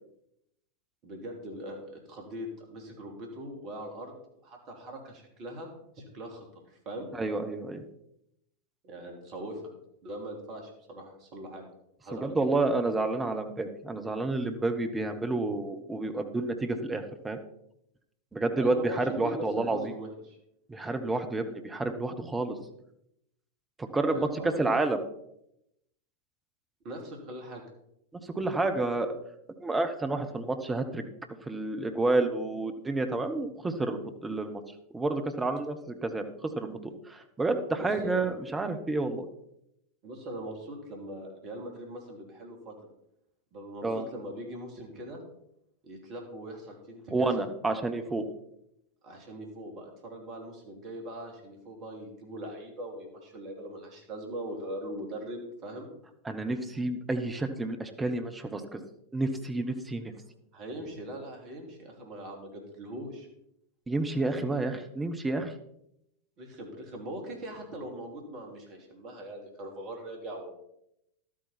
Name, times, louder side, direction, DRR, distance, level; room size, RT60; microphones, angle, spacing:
voice 1, 1.0-4.1 4.4-5.7 6.0-7.1 8.8-9.6 10.0-11.6 12.0-12.5 18.6-20.4 24.1-24.6 26.8-27.6 37.7-38.4 40.0-42.9 43.5-45.2 45.8-47.5 49.0-55.9 60.5-63.3 66.4-70.5, right 1 dB, 40° right, 2 dB, 3.0 m, -41 dB
voice 2, 7.2-7.8 12.1-17.4 18.3-19.8 20.7-22.6 23.8-25.0 28.3-29.2 29.6-31.0 31.5-34.6 34.9-39.3 43.8-44.0 47.1-48.2 56.2-58.8 59.1-60.1 63.9-65.5, right 2 dB, 10° right, 7 dB, 1.2 m, -30 dB
12.5 x 8.7 x 4.4 m, 0.78 s
figure-of-eight pair, 90°, 0 cm